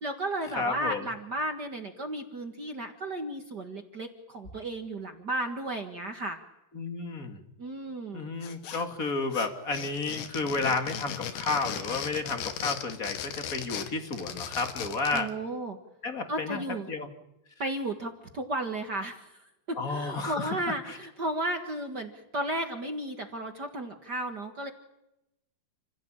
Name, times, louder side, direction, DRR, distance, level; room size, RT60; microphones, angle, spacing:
voice 1, 0.0-6.4 7.6-8.3 15.1-15.8 16.3-16.9 17.6-19.3 19.7-24.7, right 1 dB, 45° right, 5 dB, 1.4 m, -34 dB
voice 2, 0.5-1.1 6.7-7.4 8.1-15.3 16.0-17.1 19.8-21.0, left 3 dB, 30° left, 6 dB, 1.9 m, -32 dB
sound 1, 8.4-9.1 9.3-15.3, left 9 dB, 85° left, 3.8 m, -37 dB
30.0 x 16.5 x 8.9 m, 0.90 s
omnidirectional pair, 4.6 m